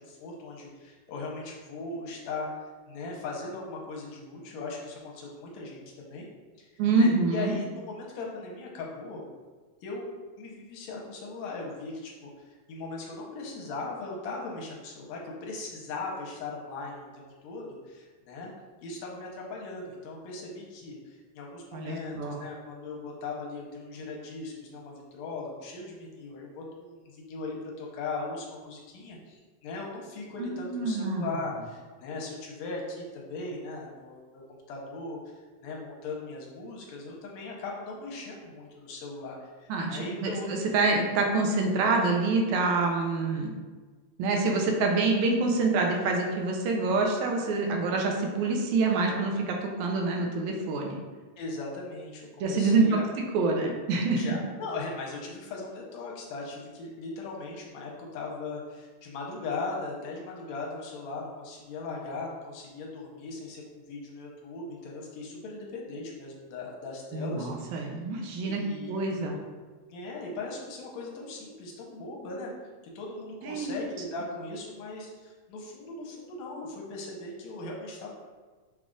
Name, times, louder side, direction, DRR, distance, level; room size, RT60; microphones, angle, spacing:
voice 1, 0.0-2.5 2.9-6.3 6.6-6.7 7.0-9.2 9.8-10.1 10.4-18.5 18.8-35.4 35.6-40.5 51.4-53.1 54.2-68.0 68.4-69.0 69.9-72.5 73.0-78.1, left 3 dB, 75° left, -2 dB, 1.9 m, -39 dB
voice 2, 6.8-7.5 21.7-22.4 30.4-31.3 39.7-43.5 44.2-51.0 52.4-53.0 53.3-54.3 67.1-68.6 68.9-69.4 73.4-73.9, right 3 dB, 80° right, 1 dB, 2.0 m, -26 dB
5.9 x 2.4 x 3.7 m, 1.4 s
omnidirectional pair, 3.3 m